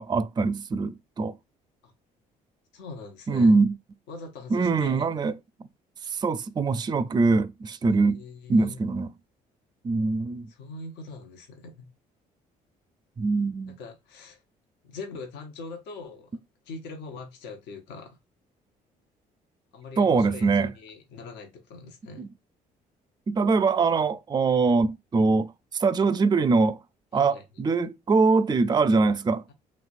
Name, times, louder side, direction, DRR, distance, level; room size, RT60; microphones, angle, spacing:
voice 1, 0.0-1.4 3.3-3.8 4.5-5.3 6.1-8.2 8.5-9.1 9.8-10.5 13.2-13.8 20.0-20.7 22.2-22.3 23.3-26.8 27.1-29.4, right 4 dB, 25° right, 0.4 m, -23 dB
voice 2, 2.7-3.6 4.1-5.1 7.9-8.8 10.5-11.9 13.7-14.4 14.8-16.3 16.7-18.2 19.7-22.3 27.1-27.4, left 3 dB, 75° left, 0.9 m, -42 dB
3.2 x 3.1 x 2.5 m
supercardioid pair, 60°, 18 cm